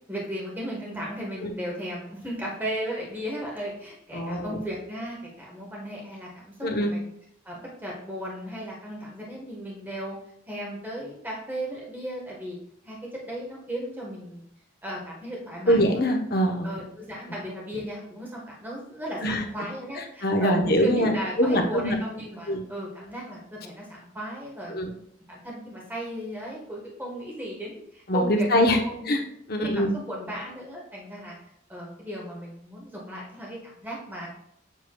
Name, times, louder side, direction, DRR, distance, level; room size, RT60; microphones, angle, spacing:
voice 1, 0.1-7.1 7.4-10.2 10.5-12.6 12.9-13.0 13.2-14.4 14.8-15.9 16.6-24.8 25.3-28.5 28.9-29.1 29.5-31.3 31.7-34.3, equal, 10° right, -3 dB, 1.2 m, -36 dB
voice 2, 4.1-4.5 6.6-6.9 15.7-16.7 19.2-19.4 20.2-21.1 21.4-22.0 22.5-22.6 24.7-24.9 28.1-28.8 29.1-29.2 29.5-29.9, equal, 50° left, 3 dB, 0.9 m, -23 dB
7.4 x 6.7 x 2.3 m, 0.71 s
head